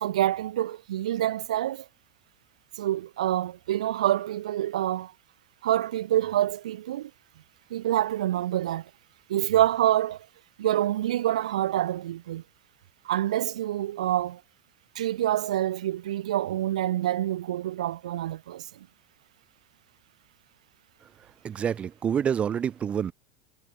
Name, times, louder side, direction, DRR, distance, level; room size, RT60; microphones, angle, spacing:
voice 1, 0.0-1.8 2.8-5.1 5.6-7.1 7.7-8.8 9.3-10.3 10.6-12.4 13.0-14.4 14.9-18.7, right 13 dB, 75° right, 2.6 m, -26 dB
voice 2, 21.4-23.1, right 8 dB, 35° right, 1.0 m, -27 dB
hypercardioid pair, 80°, 4 cm